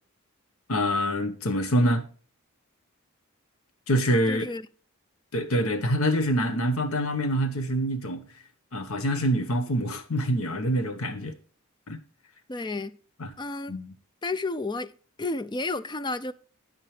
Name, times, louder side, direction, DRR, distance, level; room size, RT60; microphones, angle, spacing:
voice 1, 0.7-2.1 3.9-4.4 5.3-8.2 8.7-11.3 11.9-12.0 13.2-13.3 13.7-13.9, equal, 85° left, 1.2 m, -25 dB
voice 2, 4.3-4.6 12.5-13.0 13.4-13.8 14.2-14.9 15.2-16.3, left 2 dB, 20° left, 0.5 m, -31 dB
9.6 x 9.1 x 3.3 m
head